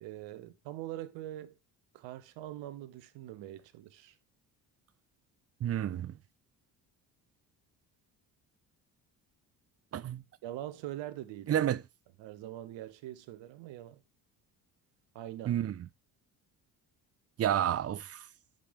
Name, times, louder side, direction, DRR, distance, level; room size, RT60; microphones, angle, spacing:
voice 1, 0.0-1.6 1.9-4.2 10.4-11.6 12.2-14.0 15.1-15.6, right 13 dB, 65° right, 1.0 m, -43 dB
voice 2, 5.6-6.2 9.9-10.2 11.5-11.8 15.5-15.8 17.4-18.3, right 11 dB, 30° right, 0.5 m, -30 dB
11.0 x 5.2 x 3.5 m
hypercardioid pair, 55°, 47 cm